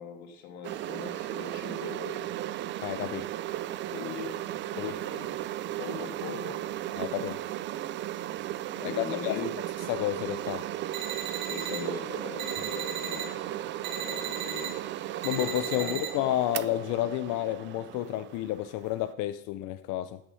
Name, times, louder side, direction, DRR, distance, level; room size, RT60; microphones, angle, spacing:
voice 1, 0.0-2.2 3.8-4.3 4.6-5.3 5.8-6.6 8.8-9.5 11.4-13.4 13.8-14.8 15.1-15.2 15.8-15.9, left 6 dB, 80° left, 2.6 m, -40 dB
sound 1, 0.6-19.1, right 13 dB, 30° right, 0.3 m, -36 dB
voice 2, 2.8-3.3 4.8-5.0 7.0-7.4 8.8-9.4 9.9-10.7 15.2-20.2, left 14 dB, 50° left, 0.6 m, -31 dB
sound 2, 10.9-11.8 12.4-13.3 13.8-14.7 15.2-16.1, right 9 dB, 85° right, 1.6 m, -36 dB
12.5 x 6.1 x 5.5 m
supercardioid pair, 120°, 41 cm